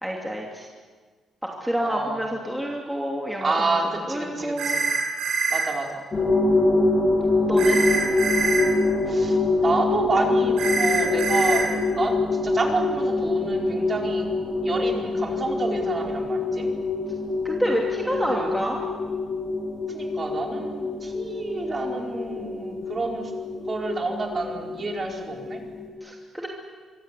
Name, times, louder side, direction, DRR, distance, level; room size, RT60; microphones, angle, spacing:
voice 1, 0.0-0.7 1.6-3.8 4.1-4.8 7.5-7.8 17.4-18.8 26.0-26.5, equal, 5° right, -1 dB, 2.8 m, -28 dB
voice 2, 1.8-2.2 3.4-4.8 5.5-6.0 9.1-9.4 9.6-11.6 11.9-14.2 14.6-16.7 18.0-18.5 19.9-23.3 23.6-25.6, right 3 dB, 30° right, 0 dB, 4.8 m, -29 dB
sound 1, 4.6-5.6 7.6-8.6 10.6-11.6, right 4 dB, 90° right, 7.8 m, -24 dB
sound 2, 6.1-25.9, left 3 dB, 30° left, 7.1 m, -25 dB
25.0 x 24.5 x 8.4 m, 1.5 s
cardioid pair, 145°, 0 cm